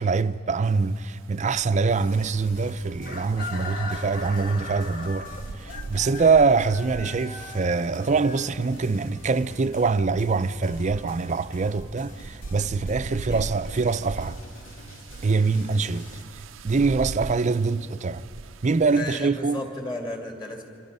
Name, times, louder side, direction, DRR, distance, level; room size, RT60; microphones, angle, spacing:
voice 1, 0.0-5.3 5.6-14.4 15.2-16.1 16.6-18.3 18.6-19.6, right 4 dB, 40° right, 0.5 m, -24 dB
sound 1, 0.6-19.0, right 3 dB, 85° right, 0.5 m, -42 dB
sound 2, 1.9-16.2, equal, 85° left, 3.0 m, -45 dB
Chicken rooster, 3.0-9.0, left 3 dB, 50° left, 1.6 m, -39 dB
voice 2, 18.9-20.6, left 2 dB, 25° left, 2.6 m, -34 dB
27.0 x 25.5 x 5.5 m
head